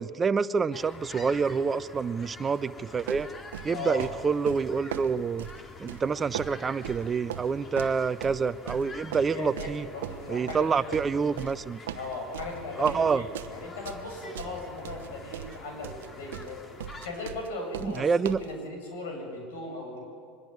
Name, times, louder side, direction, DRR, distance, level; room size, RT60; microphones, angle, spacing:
voice 1, 0.0-3.3 3.6-5.5 5.8-9.9 10.3-11.8 12.8-13.2 17.8-18.4, right 5 dB, 30° right, 14 dB, 0.8 m, -27 dB
sound 1, 0.7-17.1, left 2 dB, 30° left, 2.7 m, -47 dB
sound 2, 3.1-18.5, right 11 dB, 85° right, 1.0 m, -39 dB
voice 2, 3.7-4.1 9.3-11.1 11.9-16.6 17.0-20.0, left 2 dB, 80° left, 2 dB, 8.0 m, -38 dB
24.5 x 21.0 x 9.5 m, 2.3 s
hypercardioid pair, 90°, 0 cm